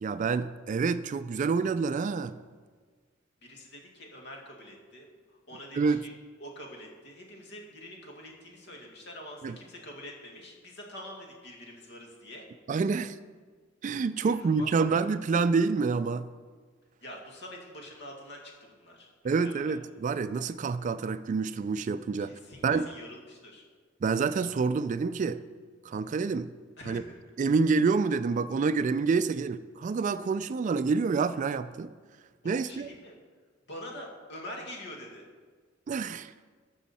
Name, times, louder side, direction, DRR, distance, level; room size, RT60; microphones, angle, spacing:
voice 1, 0.0-2.4 5.8-6.0 9.4-9.6 12.7-13.2 13.8-16.3 19.2-22.4 22.6-22.9 24.0-25.4 25.9-26.5 26.9-27.0 27.4-31.9 32.4-32.9 35.9-36.4, right 4 dB, 40° right, 13 dB, 0.3 m, -27 dB
voice 2, 3.4-6.1 6.4-12.4 14.2-14.7 15.0-15.1 17.0-19.8 22.2-23.6 26.8-27.2 32.4-33.2 33.7-35.2, left 1 dB, 65° left, 0 dB, 1.9 m, -45 dB
13.5 x 6.2 x 4.2 m, 1.5 s
head